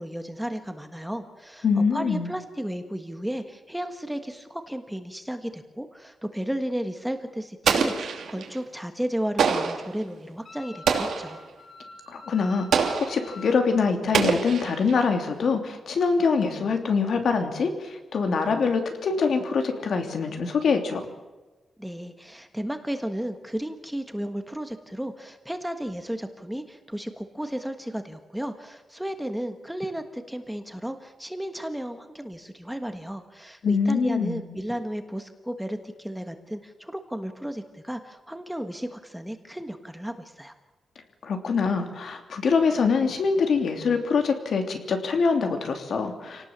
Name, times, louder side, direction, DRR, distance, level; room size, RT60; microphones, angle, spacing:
voice 1, 0.0-1.6 1.9-11.4 21.8-40.5, equal, 5° right, 7 dB, 1.4 m, -34 dB
voice 2, 1.6-2.3 12.1-21.0 33.6-34.4 41.2-46.5, left 5 dB, 65° left, 5 dB, 3.0 m, -24 dB
Explosion, 7.6-8.6 9.4-9.9 10.9-11.4 12.7-13.3 14.1-15.0, right 6 dB, 85° right, 2.8 m, -25 dB
Wind instrument woodwind instrument, 10.4-13.7, left 4 dB, 40° left, 5.1 m, -46 dB
27.5 x 18.5 x 7.4 m, 1.2 s
wide cardioid pair, 160°, 0 cm